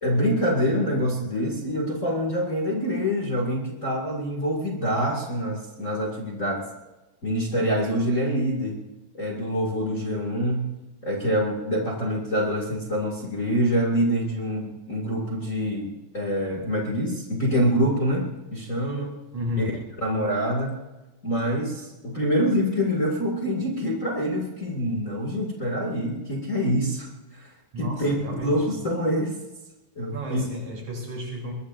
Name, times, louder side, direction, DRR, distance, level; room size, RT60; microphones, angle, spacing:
voice 1, 0.0-6.6 7.2-8.7 9.1-10.7 11.0-19.1 19.6-19.7 20.0-20.8 21.2-28.1 28.4-29.4 30.0-30.4, equal, 25° left, -1 dB, 2.3 m, -26 dB
voice 2, 19.3-19.7 27.7-28.7 30.1-31.5, left 1 dB, 55° right, -2 dB, 4.8 m, -32 dB
22.0 x 22.0 x 2.7 m, 1.1 s
omnidirectional pair, 4.0 m